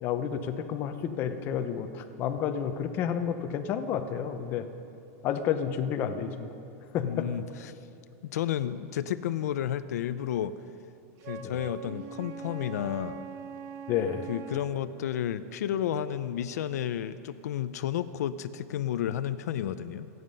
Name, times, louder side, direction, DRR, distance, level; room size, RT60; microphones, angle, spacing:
voice 1, 0.0-4.6 5.2-6.5 6.9-7.3 11.4-11.6 13.9-14.3, left 8 dB, 25° left, 7 dB, 0.8 m, -30 dB
voice 2, 7.0-7.7 8.2-10.5 11.3-13.2 14.3-20.1, left 10 dB, 85° left, 12 dB, 0.6 m, -32 dB
Wind instrument woodwind instrument, 11.2-14.8, right 7 dB, 30° right, 0.6 m, -42 dB
28.0 x 9.5 x 5.5 m, 2.7 s
supercardioid pair, 180°, 9 cm